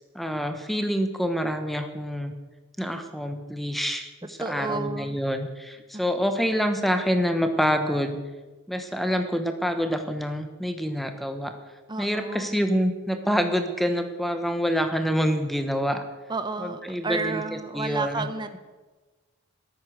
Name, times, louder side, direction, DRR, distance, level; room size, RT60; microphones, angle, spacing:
voice 1, 0.1-2.3 2.8-8.2 8.7-11.6 12.0-16.0 16.6-17.4 17.7-18.3, equal, ahead, 7 dB, 1.1 m, -26 dB
voice 2, 4.4-5.2 5.9-6.0 11.9-12.6 16.3-18.6, right 3 dB, 20° right, 9 dB, 0.7 m, -31 dB
14.0 x 12.5 x 6.4 m, 1.3 s
head